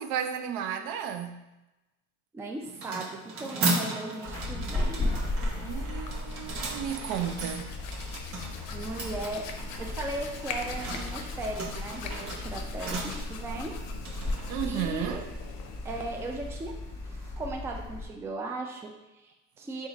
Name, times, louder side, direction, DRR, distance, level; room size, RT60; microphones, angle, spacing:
voice 1, 0.0-1.5 5.6-7.7 14.5-15.2, right 9 dB, 70° right, 0.5 m, -33 dB
voice 2, 2.3-5.2 8.7-9.5 9.8-13.8 14.3-15.3 15.8-16.8 17.1-19.9, right 2 dB, 10° right, 0.3 m, -37 dB
sound 1, 2.6-15.7, right 2 dB, 45° right, 0.8 m, -37 dB
sound 2, 4.2-18.0, left 2 dB, 10° left, 0.9 m, -36 dB
Hands, 5.9-17.3, left 6 dB, 75° left, 0.6 m, -43 dB
3.7 x 2.5 x 4.0 m
cardioid pair, 130°, 33 cm